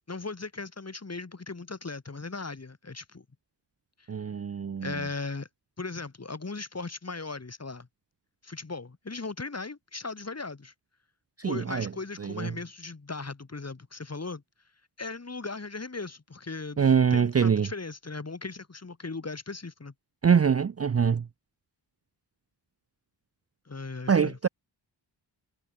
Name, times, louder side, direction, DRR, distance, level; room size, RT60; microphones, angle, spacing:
voice 1, 0.1-3.2 4.8-5.5 5.8-7.9 8.4-10.7 11.4-14.4 15.0-19.9 23.7-24.4, left 3 dB, 35° left, 4.3 m, -38 dB
voice 2, 4.1-4.9 11.4-11.9 12.2-12.5 16.8-17.7 20.2-21.2 24.1-24.5, right 6 dB, 30° right, 0.6 m, -24 dB
wide cardioid pair, 105°, 46 cm